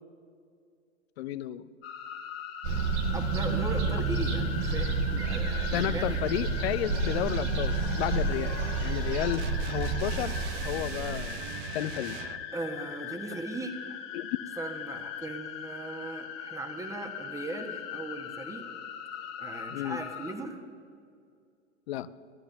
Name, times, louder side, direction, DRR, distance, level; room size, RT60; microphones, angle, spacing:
voice 1, 1.2-1.6 5.7-8.6 8.8-11.5 11.7-12.2 14.1-14.3 19.7-20.0 21.9-22.1, left 13 dB, 55° left, 16 dB, 0.7 m, -32 dB
sound 1, 1.8-20.3, left 9 dB, 35° left, 1.5 m, -41 dB
sound 2, 2.6-11.4, right 4 dB, 60° right, 2.3 m, -30 dB
voice 2, 3.1-6.2 12.5-14.0 14.6-18.7 19.4-20.6, right 2 dB, 10° right, 6 dB, 1.3 m, -38 dB
sound 3, 9.4-12.5, right 8 dB, 45° right, 0.7 m, -39 dB
15.0 x 11.0 x 6.7 m, 2.3 s
hypercardioid pair, 110°, 37 cm